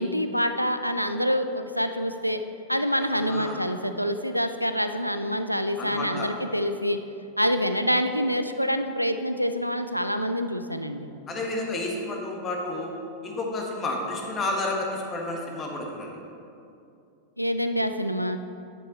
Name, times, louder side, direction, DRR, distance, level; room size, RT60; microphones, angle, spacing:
voice 1, 0.0-2.4 2.7-7.0 7.4-11.1 17.4-18.4, equal, 90° left, 8 dB, 0.3 m, -26 dB
voice 2, 3.1-3.6 5.8-6.3 11.3-12.9 13.2-16.1, left 2 dB, 25° left, 0 dB, 1.3 m, -31 dB
10.0 x 5.4 x 4.2 m, 2.6 s
figure-of-eight pair, 90°, 0 cm